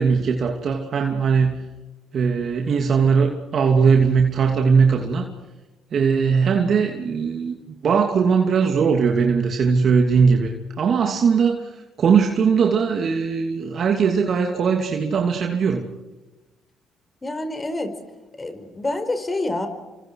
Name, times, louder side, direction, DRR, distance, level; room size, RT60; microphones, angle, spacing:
voice 1, 0.0-1.6 2.1-5.3 5.9-7.6 7.8-15.8, right 5 dB, 55° right, 2 dB, 2.7 m, -19 dB
voice 2, 17.2-17.9 18.4-19.7, left 2 dB, 25° left, 8 dB, 4.7 m, -27 dB
29.5 x 25.5 x 4.8 m, 1.1 s
supercardioid pair, 65°, 0 cm